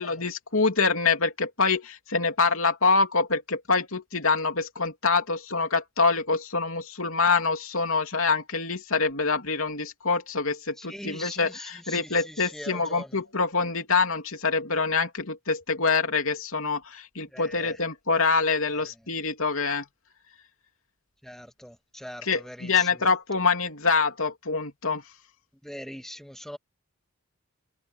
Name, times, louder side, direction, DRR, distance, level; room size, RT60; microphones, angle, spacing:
voice 1, 0.0-19.8 22.2-25.0, left 4 dB, 70° left, 3.1 m, -25 dB
voice 2, 10.8-13.1 17.3-17.7 21.2-22.9 25.6-26.6, equal, ahead, 1.9 m, -41 dB
head